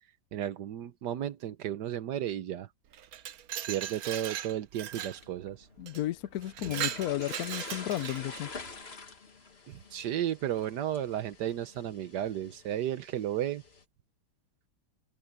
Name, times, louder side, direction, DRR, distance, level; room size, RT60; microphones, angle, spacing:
voice 1, 0.3-2.7 3.7-5.7 9.7-13.6, right 11 dB, 85° right, 1.5 m, -33 dB
Glass, 2.9-5.2 5.9-6.0 6.4-8.4, right 10 dB, 65° right, 1.2 m, -38 dB
sound 1, 5.0-13.8, left 4 dB, 40° left, 2.0 m, -47 dB
voice 2, 5.8-8.5, left 13 dB, 70° left, 1.1 m, -33 dB
omnidirectional pair, 1.8 m